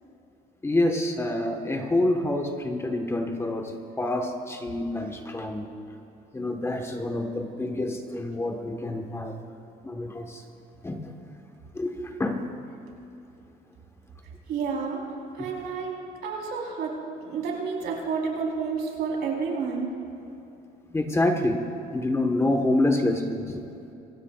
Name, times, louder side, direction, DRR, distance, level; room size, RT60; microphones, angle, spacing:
voice 1, 0.6-5.7 6.3-9.4 9.8-10.4 10.8-11.1 11.7-12.5 20.9-21.6 21.9-23.6, left 1 dB, 15° left, 4 dB, 1.3 m, -27 dB
voice 2, 14.5-15.0 15.3-16.9 17.2-19.9, right 5 dB, 75° right, -1 dB, 3.9 m, -30 dB
26.5 x 16.0 x 2.4 m, 2.8 s
cardioid pair, 110°, 17 cm